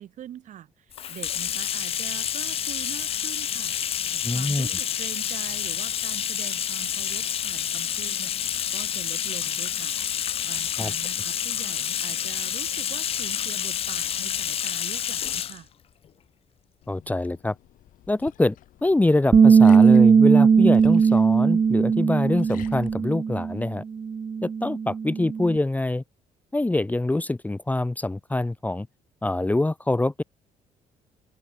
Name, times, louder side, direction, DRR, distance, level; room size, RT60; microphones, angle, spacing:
voice 1, 0.0-10.0 10.4-15.7, right 11 dB, 60° right, 3.7 m, -43 dB
Bathtub (filling or washing), 0.9-15.6, left 9 dB, 45° left, 0.5 m, -29 dB
voice 2, 4.2-4.7 10.8-10.9 16.9-17.5 18.1-18.6 18.8-23.8 24.4-26.0 26.5-28.9 29.2-30.2, left 2 dB, 10° left, 1.0 m, -25 dB
Liquid, 16.8-23.0, left 14 dB, 75° left, 4.8 m, -50 dB
Bass guitar, 19.3-23.7 24.0-25.6, right 6 dB, 25° right, 0.4 m, -18 dB
open air
cardioid pair, 100°, 14 cm